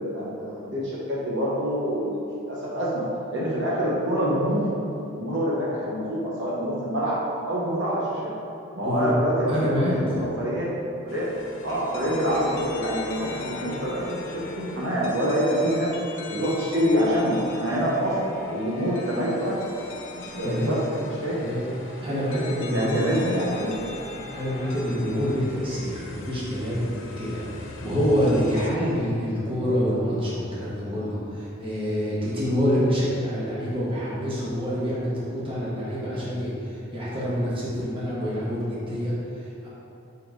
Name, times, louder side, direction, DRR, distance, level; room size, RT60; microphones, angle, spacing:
voice 1, 0.0-3.0 3.3-4.7 5.1-7.1 7.5-8.3 8.7-10.7 11.0-11.3 11.6-14.0 14.3-15.9 16.3-18.2 18.5-19.6 20.1-21.4 22.1-22.2 22.7-23.8, equal, 55° right, -7 dB, 1.1 m, -26 dB
voice 2, 8.8-9.1 9.5-10.2 20.4-20.8 21.4-21.6 22.0-23.1 24.3-26.9 27.2-39.7, equal, 25° right, -8 dB, 1.4 m, -26 dB
sound 1, 11.1-28.7, left 3 dB, 60° left, 0.6 m, -39 dB
5.7 x 5.1 x 3.9 m, 2.9 s
head